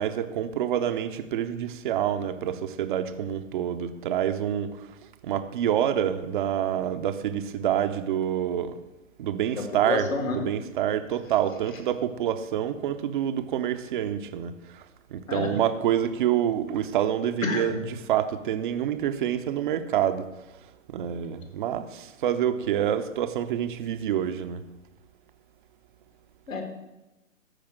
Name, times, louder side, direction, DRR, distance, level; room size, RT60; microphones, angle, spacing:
voice 1, 0.0-4.8 5.2-8.7 9.2-10.1 10.3-14.5 15.1-20.3 20.9-24.6, right 10 dB, 40° right, 10 dB, 0.8 m, -27 dB
voice 2, 9.5-10.4 15.3-15.5 17.4-17.8 26.5-26.6, left 3 dB, 70° left, 4 dB, 2.8 m, -29 dB
14.0 x 5.1 x 7.6 m, 1.0 s
figure-of-eight pair, 135°, 41 cm